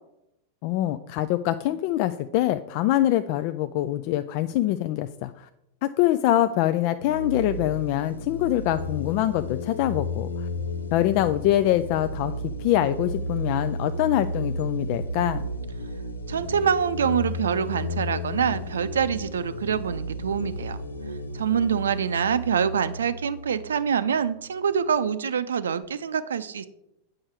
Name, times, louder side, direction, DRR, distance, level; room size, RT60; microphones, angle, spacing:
voice 1, 0.6-5.5 5.8-10.5 10.9-12.3 12.6-15.5, left 13 dB, 45° left, 11 dB, 0.3 m, -24 dB
sound 1, 7.0-24.4, left 1 dB, 75° left, 0.7 m, -33 dB
voice 2, 16.3-20.8 21.3-26.7, right 7 dB, 65° right, 14 dB, 0.5 m, -25 dB
8.7 x 6.3 x 4.6 m, 0.84 s
figure-of-eight pair, 90°, 0 cm